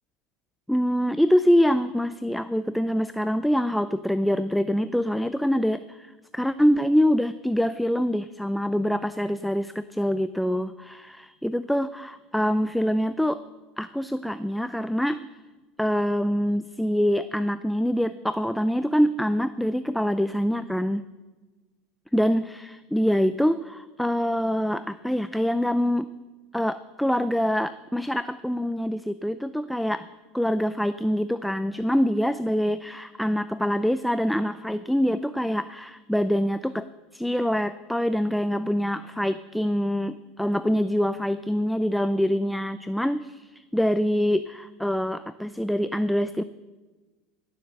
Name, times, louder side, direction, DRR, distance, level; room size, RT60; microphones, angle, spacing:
voice 1, 0.7-13.4 13.8-15.2 15.8-21.0 22.1-26.1 26.5-30.1 30.3-36.9 37.1-46.4, equal, ahead, 13 dB, 0.4 m, -25 dB
15.0 x 7.1 x 7.6 m, 1.2 s
supercardioid pair, 105°, 0 cm